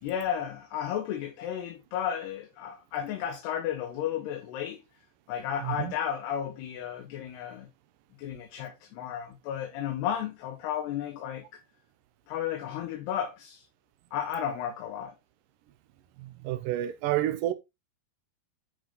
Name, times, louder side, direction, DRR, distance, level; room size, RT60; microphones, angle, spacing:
voice 1, 0.0-4.8 5.3-7.7 8.2-11.5 12.3-13.6 14.1-15.1, left 9 dB, 75° left, 3.2 m, -33 dB
voice 2, 5.6-5.9 16.2-17.5, right 13 dB, 85° right, 1.9 m, -29 dB
9.9 x 5.2 x 4.0 m
omnidirectional pair, 4.9 m